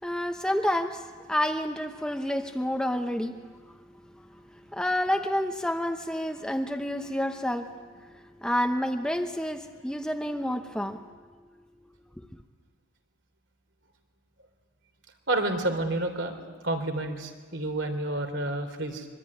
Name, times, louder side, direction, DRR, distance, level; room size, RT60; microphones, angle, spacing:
voice 1, 0.0-3.3 4.2-4.3 4.7-7.7 8.4-11.0, left 1 dB, 5° left, 5 dB, 0.9 m, -29 dB
voice 2, 15.3-16.4 16.6-19.1, right 2 dB, 60° right, 6 dB, 3.4 m, -29 dB
24.5 x 23.5 x 9.8 m, 1.5 s
head